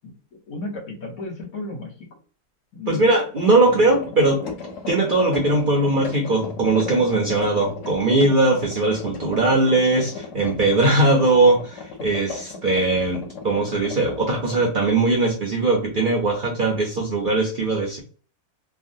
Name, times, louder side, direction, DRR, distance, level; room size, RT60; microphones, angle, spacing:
voice 1, 0.0-2.1 2.7-3.1 3.6-3.8, left 2 dB, 90° left, -1 dB, 1.6 m, -34 dB
voice 2, 2.9-4.4 4.9-18.0, right 2 dB, 50° right, 0 dB, 0.6 m, -20 dB
sound 1, 3.4-14.6, left 4 dB, 60° left, 1.1 m, -36 dB
3.4 x 2.1 x 2.6 m, 0.39 s
omnidirectional pair, 1.5 m